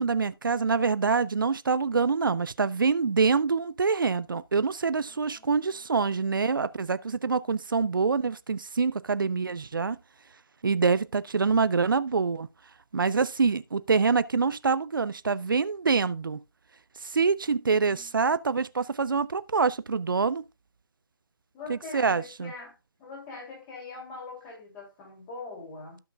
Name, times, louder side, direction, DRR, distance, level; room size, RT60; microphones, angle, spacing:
voice 1, 0.0-10.0 10.6-12.5 12.9-16.4 17.0-20.4 21.7-22.5, right 5 dB, 60° right, 0.5 m, -25 dB
voice 2, 5.1-6.9 17.5-18.1 21.5-26.0, left 3 dB, 15° left, 3.0 m, -44 dB
16.5 x 5.8 x 2.4 m
figure-of-eight pair, 150°, 12 cm